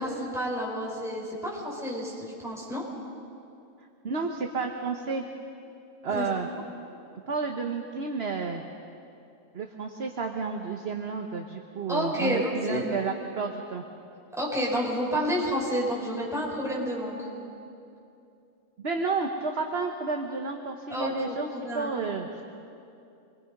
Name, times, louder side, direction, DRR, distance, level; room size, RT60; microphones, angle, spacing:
voice 1, 0.0-2.8 6.1-6.2 11.9-12.8 14.4-17.2 20.9-21.9, equal, ahead, -5 dB, 5.3 m, -30 dB
voice 2, 4.0-5.2 6.0-6.5 7.3-8.6 9.5-13.8 18.8-22.4, right 4 dB, 45° right, 3 dB, 1.3 m, -31 dB
27.0 x 22.0 x 5.4 m, 2.6 s
omnidirectional pair, 1.6 m